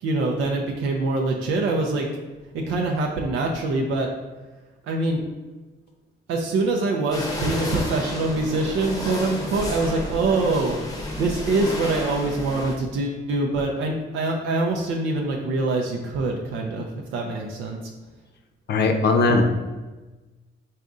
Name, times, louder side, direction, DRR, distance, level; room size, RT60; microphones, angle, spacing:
voice 1, 0.0-2.1 2.5-4.1 4.8-5.2 6.3-10.8 11.2-16.9 17.1-17.8, right 2 dB, 85° right, 0 dB, 0.5 m, -24 dB
sound 1, 7.1-12.8, left 1 dB, 20° left, 0.7 m, -31 dB
voice 2, 18.7-19.4, left 3 dB, 60° left, 5 dB, 0.6 m, -19 dB
4.1 x 2.5 x 3.6 m, 1.2 s
cardioid pair, 90°, 20 cm